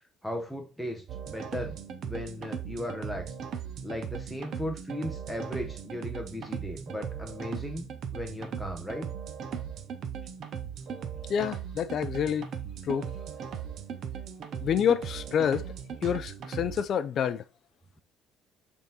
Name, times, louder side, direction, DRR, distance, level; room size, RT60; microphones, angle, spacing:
voice 1, 0.2-1.8 2.0-3.3 3.8-9.1, left 1 dB, ahead, 0.7 m, -37 dB
sound 1, 1.1-16.8, right 7 dB, 45° right, 0.7 m, -38 dB
voice 2, 11.3-12.5 12.8-13.1 14.6-15.7 16.0-17.4, left 8 dB, 40° left, 0.4 m, -28 dB
6.6 x 3.6 x 4.1 m
cardioid pair, 160°, 0 cm